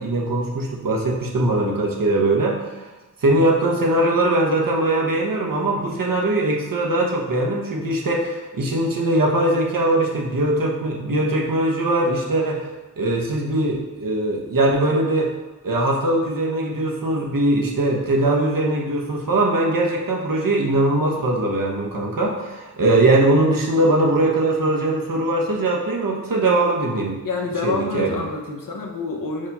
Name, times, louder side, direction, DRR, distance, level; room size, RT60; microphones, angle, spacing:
voice 1, 0.0-2.6 3.2-12.7 13.0-15.3 15.6-27.2 27.6-28.2, right 2 dB, 80° right, 0 dB, 1.1 m, -21 dB
voice 2, 27.2-29.5, left 3 dB, 75° left, 1 dB, 0.9 m, -27 dB
5.4 x 3.5 x 5.4 m, 1.1 s
wide cardioid pair, 100°, 33 cm